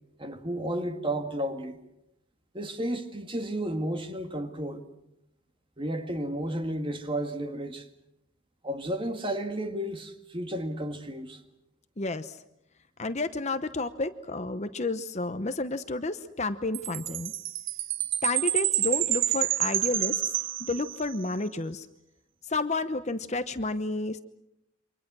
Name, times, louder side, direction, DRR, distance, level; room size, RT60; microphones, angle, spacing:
voice 1, 0.2-1.8 2.5-4.9 5.8-7.9 8.6-11.4, right 1 dB, 25° right, 1.9 m, -32 dB
voice 2, 12.0-12.4 13.0-17.3 18.2-21.9 22.4-24.2, left 2 dB, 30° left, 0.9 m, -31 dB
Chime, 16.7-21.2, right 13 dB, 60° right, 1.0 m, -28 dB
29.0 x 25.0 x 6.2 m
head